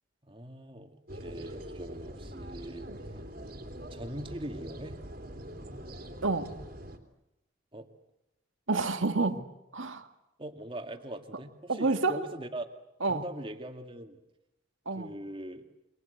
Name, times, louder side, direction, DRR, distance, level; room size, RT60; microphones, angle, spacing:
voice 1, 0.3-2.9 3.9-5.0 7.7-7.9 10.4-12.7 13.1-14.2 14.9-15.6, right 1 dB, 25° right, 5 dB, 2.2 m, -41 dB
sound 1, 1.1-7.0, right 1 dB, 50° right, 3.0 m, -43 dB
voice 2, 8.7-9.4 9.7-10.1 11.7-12.2 13.0-13.2 14.9-15.1, right 3 dB, 85° right, 7 dB, 2.0 m, -28 dB
28.5 x 25.5 x 8.0 m, 0.90 s
head